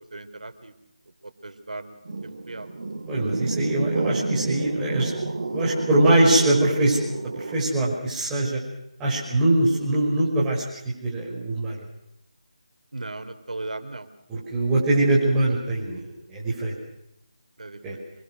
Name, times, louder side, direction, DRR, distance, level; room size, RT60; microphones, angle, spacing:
voice 1, 0.1-0.7 1.2-2.7 9.3-9.6 12.9-14.1 17.6-18.0, right 2 dB, 80° right, 9 dB, 3.5 m, -38 dB
sound 1, 2.0-7.6, right 3 dB, 50° right, 2.9 m, -30 dB
voice 2, 3.1-5.1 5.5-7.0 7.4-8.6 9.0-10.7 11.0-11.8 14.3-16.7 17.8-17.9, right 1 dB, 10° right, -6 dB, 5.7 m, -22 dB
27.0 x 23.5 x 6.5 m, 0.79 s
figure-of-eight pair, 170°, 4 cm